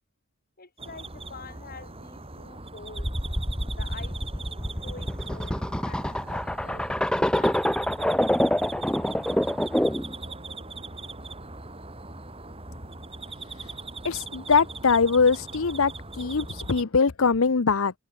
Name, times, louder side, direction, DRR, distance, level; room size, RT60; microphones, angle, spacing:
voice 1, 0.6-3.1 3.7-6.9 7.2-7.7 8.0-8.2, left 4 dB, 40° left, 4.6 m, -46 dB
sound 1, 0.8-16.8, right 3 dB, 25° right, 5.9 m, -40 dB
sound 2, 3.0-10.1, equal, 5° left, 0.9 m, -26 dB
voice 2, 14.0-17.9, left 5 dB, 65° left, 0.7 m, -22 dB
head